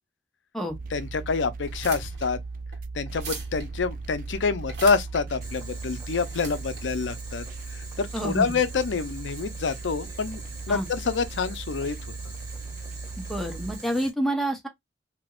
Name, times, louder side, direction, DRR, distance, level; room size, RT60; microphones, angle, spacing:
sound 1, 0.7-13.8, right 3 dB, 50° right, 0.3 m, -38 dB
voice 1, 0.9-2.4 2.9-7.4 7.7-10.4 10.7-12.0, left 4 dB, 80° left, 0.5 m, -27 dB
sound 2, 1.6-8.1, right 3 dB, 70° right, 1.5 m, -42 dB
Boiling, 5.4-14.1, right 3 dB, 20° right, 1.3 m, -44 dB
voice 2, 8.1-8.6 10.7-10.9 13.2-14.7, right 1 dB, ahead, 0.8 m, -28 dB
3.4 x 2.9 x 2.3 m
head